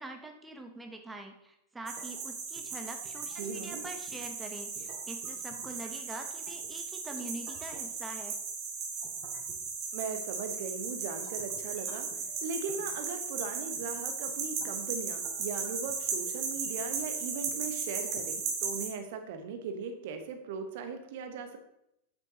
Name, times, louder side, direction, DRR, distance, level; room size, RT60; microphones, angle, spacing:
voice 1, 0.0-8.4, right 2 dB, 10° right, 5 dB, 0.9 m, -44 dB
sound 1, 1.9-18.9, right 5 dB, 35° right, 1.7 m, -36 dB
voice 2, 3.3-3.8 9.9-12.1 12.4-21.6, right 5 dB, 50° right, 6 dB, 1.0 m, -39 dB
8.9 x 8.1 x 2.8 m, 0.79 s
figure-of-eight pair, 90°, 0 cm